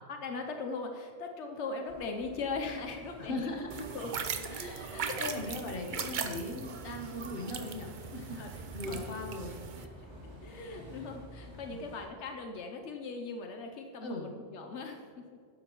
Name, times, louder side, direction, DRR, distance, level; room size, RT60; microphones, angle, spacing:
voice 1, 0.0-3.3 3.9-4.4 4.9-5.5 8.4-9.1 10.4-15.2, left 3 dB, 85° left, 4 dB, 1.1 m, -40 dB
sound 1, 1.8-12.0, equal, 25° right, 2.4 m, -51 dB
voice 2, 3.2-4.0 4.5-10.1 10.5-10.7 11.7-11.9 14.0-14.4, left 2 dB, 55° left, 2 dB, 1.4 m, -40 dB
sound 2, 3.7-9.8, right 6 dB, 50° right, 0.7 m, -39 dB
12.0 x 10.5 x 3.0 m, 2.3 s
omnidirectional pair, 1.1 m